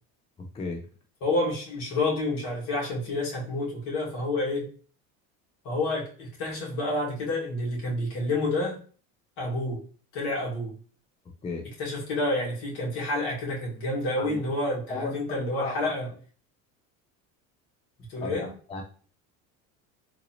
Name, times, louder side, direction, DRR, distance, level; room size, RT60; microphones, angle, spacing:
voice 1, 0.4-0.9 11.4-11.7 14.2-14.4 14.9-15.2 15.5-15.9 18.2-18.8, left 3 dB, 15° left, 0.5 m, -35 dB
voice 2, 1.2-4.7 5.6-8.8 9.4-9.8 10.1-10.8 11.8-16.1 18.1-18.5, left 2 dB, 60° left, 1.9 m, -29 dB
3.8 x 2.8 x 2.8 m
supercardioid pair, 90°, 42 cm